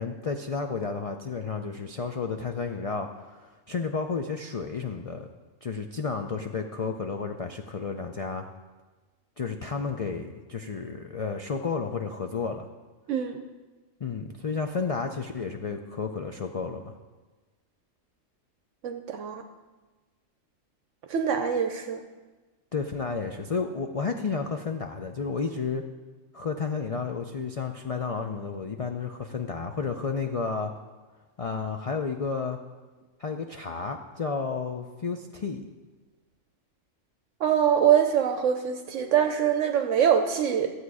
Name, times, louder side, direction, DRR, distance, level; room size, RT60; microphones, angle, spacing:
voice 1, 0.0-5.3 5.6-8.4 9.4-12.7 14.0-16.9 22.7-25.8 26.3-30.7 31.4-32.6 33.2-35.7, left 5 dB, 60° left, 4 dB, 0.3 m, -32 dB
voice 2, 13.1-13.4 18.8-19.4 21.1-22.0 37.4-40.7, right 8 dB, 75° right, 6 dB, 1.0 m, -24 dB
12.5 x 8.0 x 4.8 m, 1.3 s
omnidirectional pair, 1.4 m